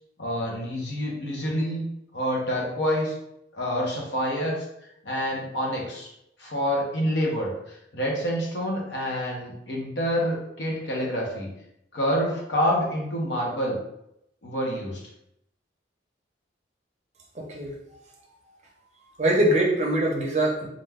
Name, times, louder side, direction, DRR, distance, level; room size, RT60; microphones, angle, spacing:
voice 1, 0.2-1.8 2.1-3.1 3.5-4.6 5.0-6.1 6.4-11.5 11.9-13.8 14.4-15.0, equal, 75° left, -2 dB, 0.8 m, -27 dB
voice 2, 17.3-17.7 19.2-20.7, right 1 dB, 40° right, -1 dB, 0.5 m, -23 dB
2.5 x 2.2 x 3.3 m, 0.80 s
head